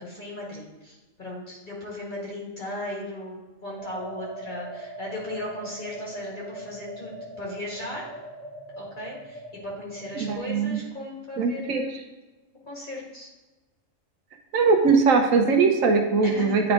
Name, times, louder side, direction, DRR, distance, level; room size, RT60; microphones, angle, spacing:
voice 1, 0.0-8.0 8.8-11.9 12.6-13.3 16.2-16.6, left 1 dB, 40° left, -4 dB, 1.7 m, -37 dB
sound 1, 3.8-10.4, right 1 dB, 60° right, 1.3 m, -40 dB
voice 2, 10.2-10.8 11.4-11.8 14.5-16.7, right 4 dB, 85° right, 4 dB, 1.3 m, -21 dB
9.6 x 3.7 x 3.7 m, 1.1 s
omnidirectional pair, 1.4 m